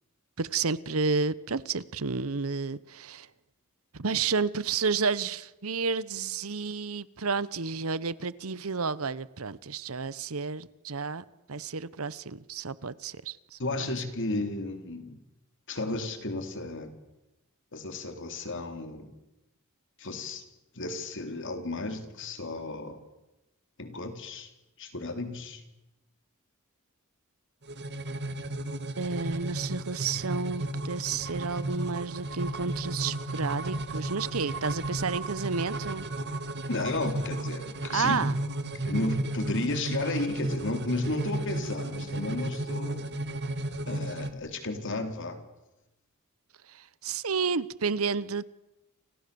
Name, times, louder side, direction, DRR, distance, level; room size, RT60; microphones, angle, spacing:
voice 1, 0.4-3.3 3.9-13.6 29.0-36.1 37.9-38.4 46.7-48.4, right 4 dB, 70° right, 1.0 m, -31 dB
voice 2, 13.6-15.2 15.7-16.9 17.7-19.1 20.0-20.4 20.7-23.0 23.8-24.5 24.8-25.6 36.7-38.2 38.9-43.1 43.9-45.4, left 2 dB, 60° left, 3.7 m, -33 dB
sound 1, 27.6-44.3, right 1 dB, 50° right, 1.9 m, -34 dB
30.0 x 26.5 x 7.0 m
head